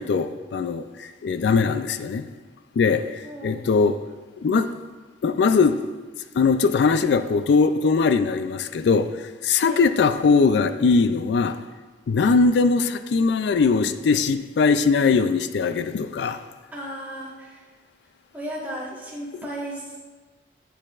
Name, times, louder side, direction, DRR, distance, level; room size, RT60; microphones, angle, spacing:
voice 1, 0.0-2.3 2.8-4.0 4.4-4.7 5.2-5.8 6.3-9.1 9.4-11.6 12.1-16.4, left 4 dB, 65° left, 0.3 m, -20 dB
voice 2, 3.2-3.6 9.6-9.8 16.7-17.6 18.3-20.0, right 1 dB, 10° right, 1.4 m, -35 dB
7.9 x 6.5 x 2.4 m
head